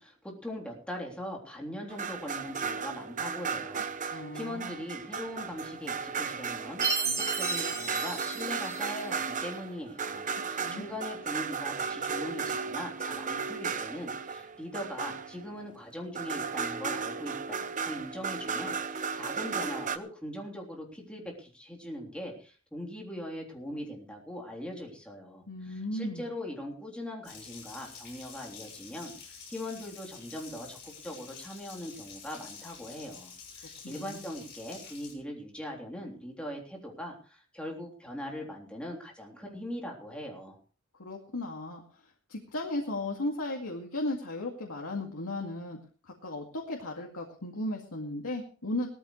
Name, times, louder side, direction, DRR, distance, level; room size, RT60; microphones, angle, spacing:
voice 1, 0.0-40.6, left 1 dB, 5° left, -1 dB, 3.5 m, -41 dB
sound 1, 1.9-15.7 16.1-20.0, right 5 dB, 35° right, 0.8 m, -35 dB
voice 2, 4.1-4.8 10.5-10.8 25.5-26.2 33.8-34.2 41.0-41.8 42.3-45.8 46.0-48.9, left 1 dB, 75° left, -1 dB, 2.3 m, -35 dB
Chime, 6.8-9.3, right 4 dB, 15° right, 3.1 m, -33 dB
Water tap faucet, 27.2-35.1, left 6 dB, 50° left, 6.3 m, -48 dB
18.5 x 14.0 x 3.3 m, 0.38 s
head